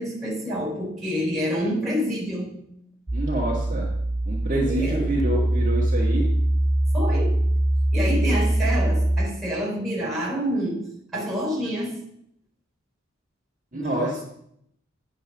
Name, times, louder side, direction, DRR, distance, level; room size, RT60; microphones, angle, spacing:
voice 1, 0.0-2.5 4.5-5.1 6.9-7.4 7.9-12.0 13.7-14.2, equal, ahead, -4 dB, 4.1 m, -28 dB
sound 1, 3.1-9.3, right 1 dB, 15° right, 0.4 m, -22 dB
voice 2, 3.1-3.9 4.2-6.3 13.7-14.2, right 2 dB, 40° right, -4 dB, 1.7 m, -27 dB
10.0 x 4.5 x 6.0 m, 0.72 s
head